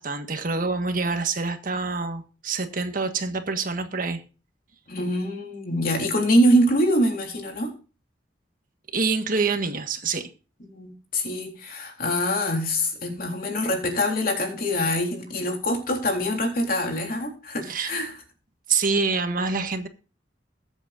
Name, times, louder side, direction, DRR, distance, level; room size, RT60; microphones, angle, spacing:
voice 1, 0.0-4.2 8.9-10.3 17.7-17.9 18.7-19.9, right 4 dB, 50° right, 1.5 m, -26 dB
voice 2, 4.9-7.7 10.7-18.1, equal, 55° left, 3.7 m, -24 dB
21.5 x 8.1 x 2.6 m
head